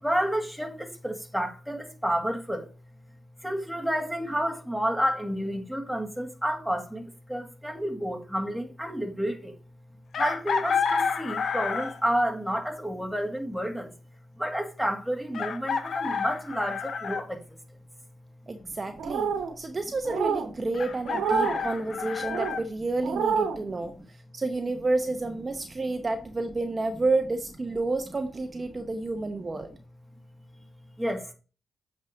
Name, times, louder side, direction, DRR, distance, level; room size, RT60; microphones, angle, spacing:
voice 1, 0.0-2.7 3.4-9.6 10.2-13.9 14.4-17.4 18.6-18.7 28.7-28.9 31.0-31.3, equal, ahead, 2.1 m, -30 dB
Chicken rooster, 10.1-12.1 13.8-13.9 15.3-17.3 20.7-22.6, left 6 dB, 70° left, 0.9 m, -29 dB
voice 2, 18.5-19.3 19.6-29.7, right 2 dB, 35° right, 0.9 m, -30 dB
sound 1, 19.0-19.5 20.0-20.5 21.0-21.6 22.2-22.6 23.0-23.6, right 6 dB, 90° right, 1.4 m, -27 dB
8.1 x 5.0 x 3.8 m
cardioid pair, 60°, 0 cm